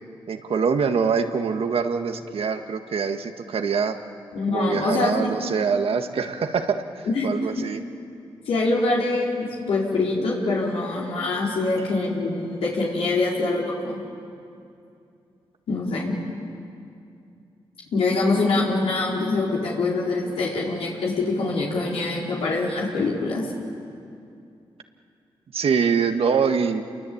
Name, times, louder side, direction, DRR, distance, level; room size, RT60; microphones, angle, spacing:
voice 1, 0.3-4.0 4.5-7.8 25.5-26.8, right 6 dB, 75° right, 6 dB, 1.8 m, -24 dB
voice 2, 4.3-5.3 7.1-7.3 7.6-7.7 8.5-14.0 15.7-16.1 17.9-23.4, left 3 dB, 85° left, -4 dB, 4.6 m, -24 dB
29.0 x 23.0 x 8.8 m, 2.5 s
cardioid pair, 60°, 10 cm